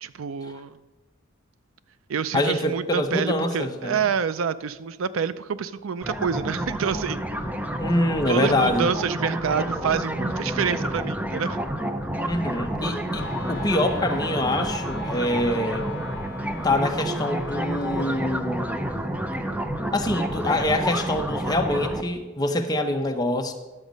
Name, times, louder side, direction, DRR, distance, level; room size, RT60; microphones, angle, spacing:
voice 1, 0.0-0.8 2.1-7.2 8.3-11.6, right 6 dB, 85° right, 15 dB, 0.4 m, -27 dB
voice 2, 2.3-4.1 7.8-8.9 12.3-15.9 16.6-18.8 19.9-23.5, left 1 dB, 20° left, 4 dB, 0.9 m, -25 dB
sound 1, 6.0-22.0, right 1 dB, 10° right, 0.5 m, -29 dB
Wind instrument woodwind instrument, 13.1-18.3, left 4 dB, 55° left, 0.7 m, -39 dB
11.0 x 7.2 x 5.2 m, 1.2 s
head